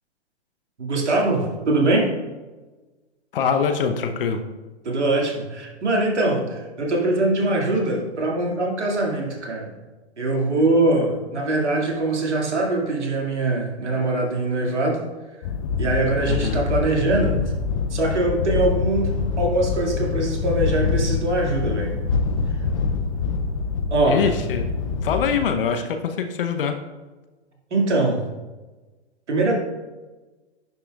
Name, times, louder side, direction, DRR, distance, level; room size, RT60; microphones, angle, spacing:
voice 1, 0.8-2.1 4.8-9.7 10.2-15.0 15.8-17.4 17.9-19.1 19.4-22.0 23.9-24.3 27.7-28.2 29.3-29.6, right 2 dB, 75° right, -1 dB, 2.2 m, -22 dB
voice 2, 3.3-4.4 11.4-11.9 16.3-16.6 24.1-24.7 25.0-26.7, left 6 dB, 50° left, 7 dB, 0.8 m, -24 dB
sound 1, 15.4-25.5, left 5 dB, 30° left, 0.4 m, -25 dB
10.5 x 5.8 x 2.4 m, 1.2 s
hypercardioid pair, 130°, 35 cm